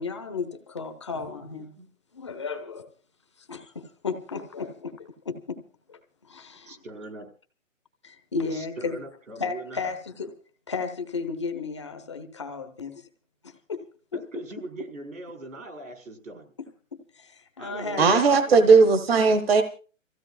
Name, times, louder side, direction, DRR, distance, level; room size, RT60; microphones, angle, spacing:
voice 1, 0.0-1.7 2.1-2.9 3.4-5.6 5.9-6.0 6.3-6.7 8.0-9.0 9.4-10.3 10.7-13.1 13.4-13.8 16.9-18.2, left 4 dB, 25° left, 0.8 m, -34 dB
voice 2, 6.7-7.3 8.4-10.0 14.1-16.5 17.6-18.6, right 2 dB, 85° right, 5.4 m, -41 dB
voice 3, 18.0-19.6, right 4 dB, 50° right, 1.2 m, -17 dB
29.5 x 15.5 x 2.4 m
hypercardioid pair, 170°, 39 cm